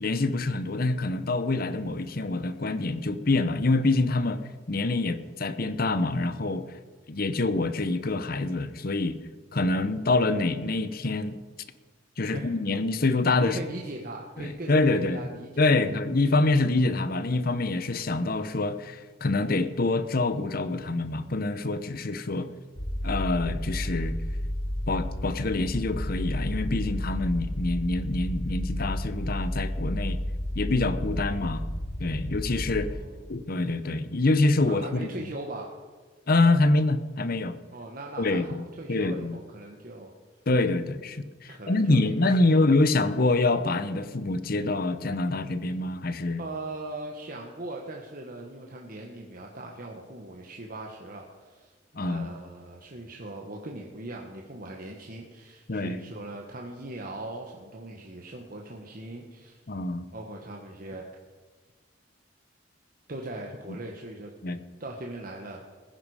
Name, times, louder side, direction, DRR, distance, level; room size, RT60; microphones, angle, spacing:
voice 1, 0.0-4.4 4.7-6.7 7.1-9.1 9.5-11.4 12.2-13.6 14.4-15.2 15.6-22.5 23.0-24.1 24.9-30.2 30.5-31.6 32.0-32.9 33.3-35.0 36.3-37.5 38.2-38.6 38.9-39.4 40.5-46.4 52.0-52.3 55.7-56.0 59.7-60.1 64.4-64.6, left 2 dB, 55° left, 12 dB, 0.9 m, -26 dB
voice 2, 12.2-12.5 13.4-15.6 32.9-33.4 34.7-35.7 37.7-40.1 41.5-42.6 42.9-43.1 46.4-59.6 60.1-61.0 63.1-64.3 64.8-65.7, right 2 dB, 50° right, 0 dB, 1.4 m, -40 dB
sound 1, 22.8-32.9, left 1 dB, 70° left, 3.4 m, -32 dB
19.0 x 10.5 x 4.9 m, 1.4 s
head